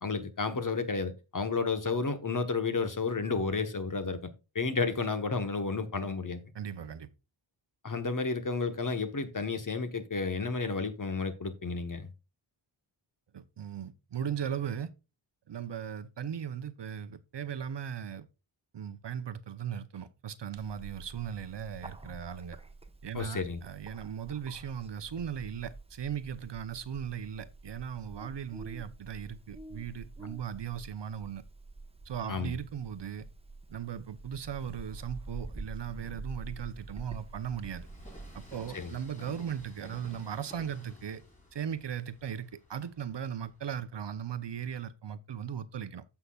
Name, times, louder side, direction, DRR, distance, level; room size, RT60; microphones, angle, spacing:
voice 1, 0.0-6.4 7.8-12.1 23.1-23.6 32.3-32.6 38.7-38.9, left 4 dB, 40° left, 1.2 m, -32 dB
voice 2, 6.5-7.1 13.3-14.9 15.5-18.3 18.7-22.6 23.0-31.4 32.1-33.3 33.7-37.9 38.3-41.2 41.5-46.0, right 8 dB, 55° right, 0.8 m, -38 dB
Bird, 20.6-38.5, right 2 dB, 10° right, 1.0 m, -47 dB
Train, 31.9-33.6 34.2-44.8, left 1 dB, 15° left, 6.1 m, -55 dB
15.0 x 5.9 x 2.4 m
wide cardioid pair, 125°, 50 cm